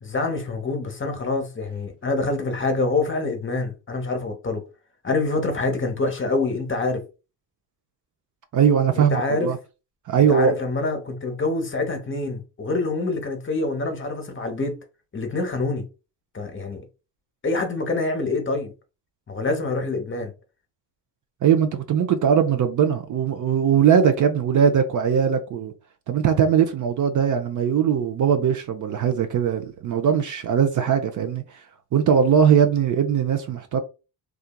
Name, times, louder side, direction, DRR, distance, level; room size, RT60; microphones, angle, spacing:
voice 1, 0.0-4.6 5.0-7.0 9.0-9.5 10.2-14.8 15.1-15.9 16.3-16.8 17.4-18.7 19.3-20.3, left 3 dB, 25° left, 0.9 m, -26 dB
voice 2, 8.5-9.6 10.1-10.5 21.4-25.7 26.1-31.4 31.9-33.8, right 7 dB, 45° right, 0.5 m, -20 dB
2.6 x 2.4 x 2.2 m
supercardioid pair, 55°, 45 cm